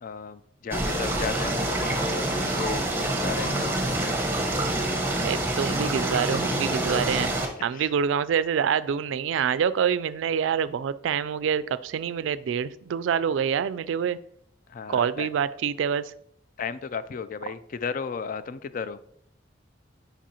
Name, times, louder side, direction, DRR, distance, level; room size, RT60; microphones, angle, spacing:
voice 1, 0.0-3.9 7.7-7.9 14.7-15.3 16.6-19.0, left 6 dB, 45° left, 14 dB, 0.3 m, -35 dB
sound 1, 0.7-7.5, right 1 dB, 10° right, 1.0 m, -26 dB
voice 2, 5.2-7.3 7.6-14.2 14.9-16.1 17.5-17.6, right 7 dB, 80° right, 16 dB, 0.3 m, -26 dB
7.4 x 5.2 x 2.9 m, 0.68 s
head